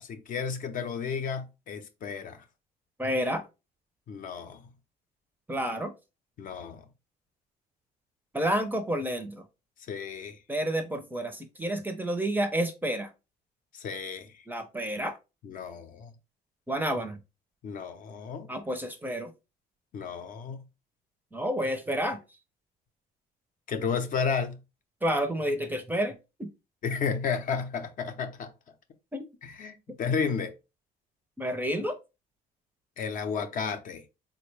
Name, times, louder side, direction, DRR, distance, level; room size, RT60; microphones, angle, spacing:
voice 1, 0.0-2.4 4.1-4.7 6.4-6.9 9.9-10.4 13.7-14.4 15.4-16.1 17.6-18.5 19.9-20.6 23.7-24.6 26.8-28.5 29.4-30.5 33.0-34.0, left 6 dB, 50° left, 0.6 m, -32 dB
voice 2, 3.0-3.4 5.5-5.9 8.3-9.5 10.5-13.1 14.5-15.2 16.7-17.2 18.5-19.3 21.3-22.2 25.0-26.5 29.1-29.2 31.4-32.0, right 1 dB, 10° right, 0.5 m, -30 dB
3.6 x 2.1 x 3.2 m
cardioid pair, 110°, 17 cm